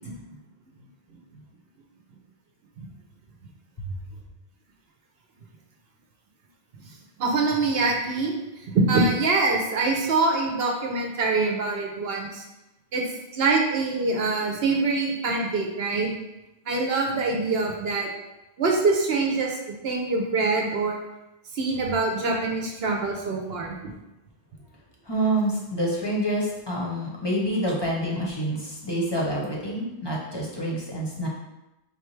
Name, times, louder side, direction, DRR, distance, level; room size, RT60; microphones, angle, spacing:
voice 1, 7.2-12.4 12.9-13.0 13.3-16.1 16.7-18.1 18.6-21.0 21.5-23.9, right 3 dB, 65° right, 0 dB, 0.9 m, -24 dB
voice 2, 25.0-31.3, right 1 dB, 25° left, -4 dB, 0.8 m, -27 dB
4.2 x 3.3 x 3.2 m, 0.95 s
omnidirectional pair, 1.1 m